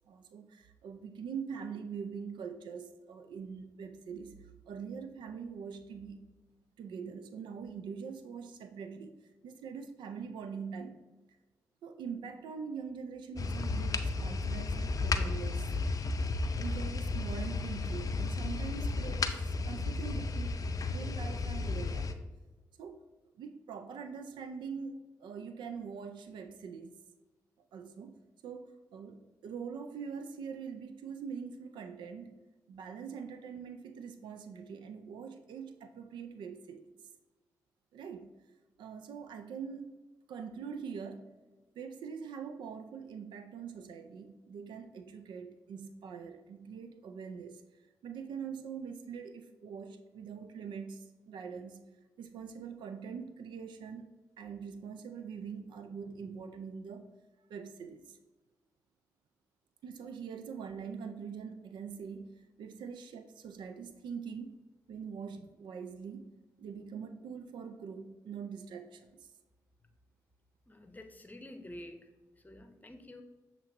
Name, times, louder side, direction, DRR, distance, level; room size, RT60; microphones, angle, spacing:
voice 1, 0.0-4.3 4.7-6.3 6.8-11.0 11.8-15.7 16.6-20.6 20.9-22.1 22.8-23.0 23.4-27.0 27.7-28.2 28.4-32.4 32.7-36.9 37.9-38.3 38.8-39.9 40.3-41.3 41.8-47.6 48.0-51.8 52.2-54.1 54.4-57.1 57.5-58.2 59.8-64.6 64.9-66.3 66.6-69.3, right 6 dB, 80° right, 8 dB, 0.4 m, -43 dB
sound 1, 13.4-22.1, left 3 dB, 50° left, 0.4 m, -33 dB
voice 2, 70.7-72.1 72.4-73.2, left 1 dB, 20° left, 6 dB, 0.8 m, -49 dB
7.1 x 2.9 x 2.5 m, 1.2 s
supercardioid pair, 40°, 8 cm